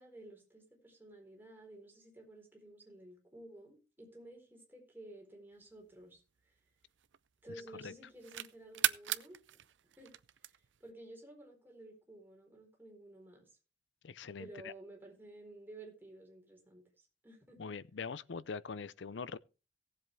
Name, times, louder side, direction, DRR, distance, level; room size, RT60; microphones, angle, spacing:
voice 1, 0.0-6.6 7.4-9.4 10.0-10.1 10.4-10.5 10.8-13.6 14.4-17.6, right 1 dB, 10° right, 4.2 m, -53 dB
sound 1, 5.8-7.5 7.9-10.9, right 12 dB, 85° right, 0.6 m, -38 dB
voice 2, 14.0-14.7 17.6-19.4, left 5 dB, 80° left, 0.6 m, -43 dB
17.5 x 7.8 x 3.3 m
head